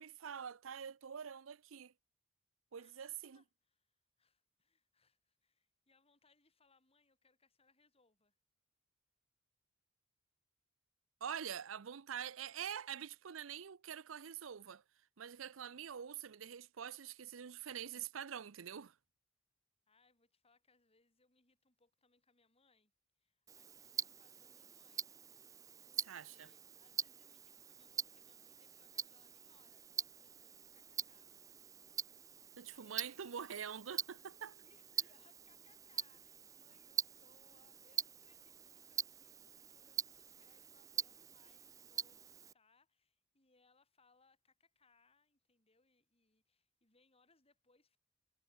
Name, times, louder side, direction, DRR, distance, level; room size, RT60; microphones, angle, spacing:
voice 1, 0.0-1.9 2.7-3.4 11.2-14.8 15.2-18.9 26.0-26.5 32.6-34.6, right 8 dB, 75° right, 0.6 m, -45 dB
voice 2, 2.8-8.4 19.9-22.9 23.2-25.1 25.4-25.5 25.8-31.3 32.4-33.7 34.6-48.0, left 3 dB, 30° left, 7.6 m, -74 dB
Tick-tock, 23.5-42.5, right 6 dB, 15° right, 0.3 m, -45 dB
head